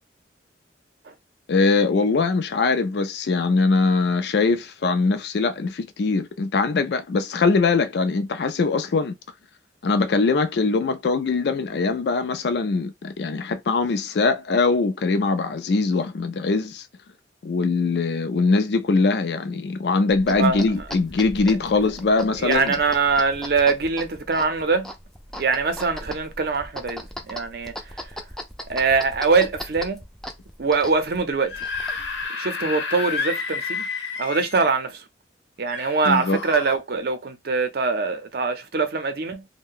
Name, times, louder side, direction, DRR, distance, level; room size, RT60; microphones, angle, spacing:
voice 1, 1.5-9.2 9.8-16.8 17.4-22.7 36.0-36.4, left 4 dB, 65° left, 0.4 m, -22 dB
sound 1, 20.1-32.2, equal, ahead, 0.4 m, -39 dB
voice 2, 20.3-20.7 22.4-24.9 25.4-27.7 28.7-30.0 30.6-31.6 32.4-33.9 34.2-35.0 35.6-39.4, right 4 dB, 60° right, 0.6 m, -23 dB
Screaming / Screech, 31.3-34.7 35.7-36.8, left 5 dB, 80° left, 0.9 m, -30 dB
2.6 x 2.1 x 3.7 m
head